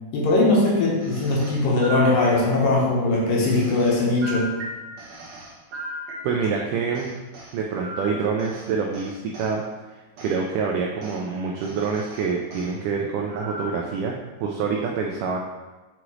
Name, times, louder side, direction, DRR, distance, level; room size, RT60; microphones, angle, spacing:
voice 1, 0.1-4.5, left 2 dB, 70° left, -3 dB, 2.6 m, -20 dB
sound 1, 1.0-2.8 3.4-6.6 6.9-9.6 10.2-10.4 11.0-11.2 11.6-12.7 13.3-13.9, right 1 dB, 65° right, 1.9 m, -37 dB
voice 2, 6.2-7.1 7.5-15.4, right 5 dB, 85° right, 0 dB, 1.8 m, -26 dB
6.3 x 4.9 x 3.0 m, 1.2 s
omnidirectional pair, 4.2 m